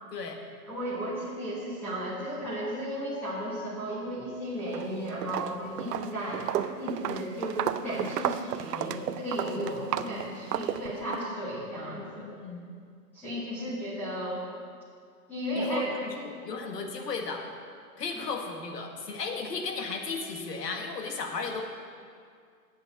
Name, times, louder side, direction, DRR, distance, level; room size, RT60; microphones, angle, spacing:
voice 1, 0.7-12.3 13.1-14.4 15.3-15.9 16.1-16.3 18.1-18.2, equal, 5° left, -11 dB, 1.3 m, -34 dB
Walk footsteps, 4.6-4.9 5.2-11.3, right 10 dB, 75° right, 0.6 m, -33 dB
voice 2, 12.2-12.6 13.6-13.7 15.5-17.4 18.0-21.6, left 4 dB, 80° left, 3 dB, 1.8 m, -35 dB
8.1 x 6.5 x 8.2 m, 2.2 s
hypercardioid pair, 170°, 48 cm